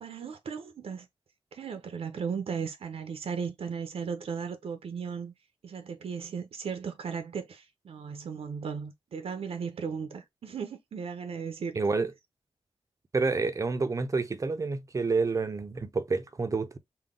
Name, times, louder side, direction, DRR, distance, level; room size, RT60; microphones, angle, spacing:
voice 1, 0.0-1.1 1.5-5.3 5.6-11.8, right 6 dB, 75° right, 0.6 m, -36 dB
voice 2, 11.8-12.1 13.1-16.8, right 4 dB, 35° right, 0.5 m, -28 dB
3.8 x 2.2 x 3.6 m
wide cardioid pair, 120°, 10 cm